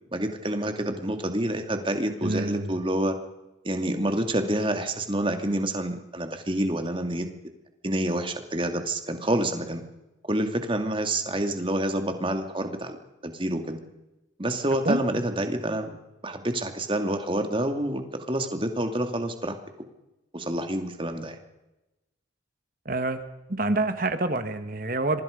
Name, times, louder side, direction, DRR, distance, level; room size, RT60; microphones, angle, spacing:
voice 1, 0.1-3.2 3.6-7.3 7.8-9.8 10.2-13.0 13.2-13.8 14.4-16.0 16.2-19.6 20.3-21.4, right 1 dB, 25° right, 6 dB, 2.5 m, -28 dB
voice 2, 2.2-2.8 14.8-15.0 22.8-23.2 23.5-25.2, right 2 dB, 45° right, 9 dB, 1.6 m, -27 dB
26.5 x 23.5 x 5.3 m, 0.97 s
head